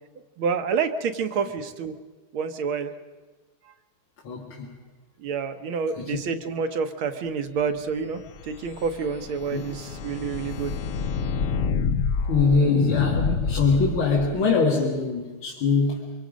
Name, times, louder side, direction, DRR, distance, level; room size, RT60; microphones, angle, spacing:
voice 1, 0.4-1.9 2.3-2.9 5.2-10.8, right 6 dB, 80° right, 9 dB, 1.9 m, -28 dB
voice 2, 4.2-4.8 6.0-6.2 9.5-9.7 12.3-16.1, left 4 dB, 85° left, -4 dB, 2.8 m, -23 dB
sound 1, 8.1-14.4, left 5 dB, 60° left, 0.9 m, -28 dB
24.5 x 24.5 x 5.2 m, 1.3 s
omnidirectional pair, 2.2 m